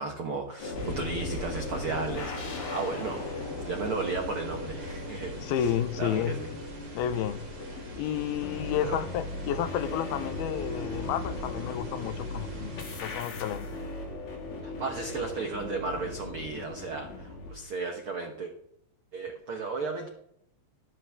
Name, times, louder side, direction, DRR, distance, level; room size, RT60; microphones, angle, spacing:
voice 1, 0.0-3.2 3.7-5.7 6.0-6.5 8.8-9.0 14.6-18.5 19.1-20.1, right 4 dB, 80° right, 3 dB, 1.2 m, -34 dB
sound 1, 0.6-17.5, left 2 dB, 65° left, 4.1 m, -38 dB
sound 2, 0.8-13.1, right 1 dB, 35° right, 2.5 m, -44 dB
voice 2, 5.4-6.4 7.0-7.4 8.0-13.7, left 10 dB, 85° left, 12 dB, 2.6 m, -31 dB
13.5 x 12.0 x 3.6 m, 0.73 s
omnidirectional pair, 4.5 m